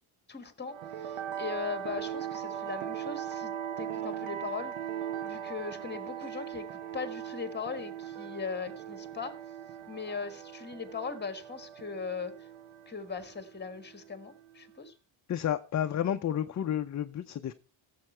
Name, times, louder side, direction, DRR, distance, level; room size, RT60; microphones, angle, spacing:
voice 1, 0.3-4.7 5.2-9.3 9.9-12.3 12.9-14.9, left 5 dB, 20° left, 1.5 m, -39 dB
sound 1, 0.7-14.8, right 9 dB, 80° right, 1.1 m, -40 dB
voice 2, 15.3-17.5, left 10 dB, 35° left, 0.6 m, -31 dB
15.5 x 7.6 x 4.4 m
cardioid pair, 130°, 49 cm